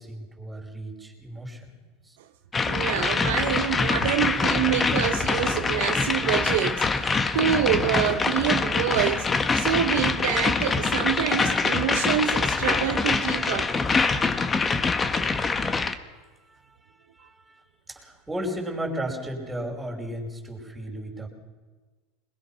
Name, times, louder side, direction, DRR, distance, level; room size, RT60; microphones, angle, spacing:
voice 1, 0.0-1.7 2.0-2.2 16.5-16.6 17.2-17.6 17.9-21.3, right 1 dB, 10° right, 5.2 m, -34 dB
sound 1, 2.5-15.9, left 4 dB, 20° left, 1.2 m, -24 dB
voice 2, 2.7-9.3 9.5-13.7, right 11 dB, 75° right, 1.1 m, -26 dB
21.5 x 21.5 x 5.7 m
supercardioid pair, 120°, 0 cm